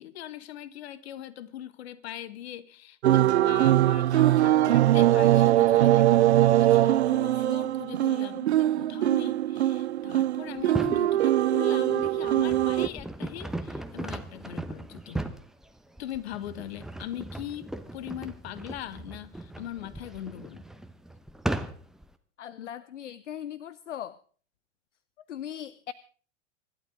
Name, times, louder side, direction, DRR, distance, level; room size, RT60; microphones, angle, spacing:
voice 1, 0.0-6.1 6.6-15.3 16.0-20.6 22.6-22.7 25.2-25.3, left 12 dB, 55° left, 1.3 m, -40 dB
sound 1, 3.0-12.9, right 13 dB, 65° right, 0.7 m, -22 dB
sound 2, 10.6-11.1 11.7-22.1, right 1 dB, ahead, 0.9 m, -37 dB
voice 2, 22.4-24.2 25.3-25.9, left 10 dB, 75° left, 0.7 m, -39 dB
25.5 x 12.0 x 3.8 m
figure-of-eight pair, 90°, 37 cm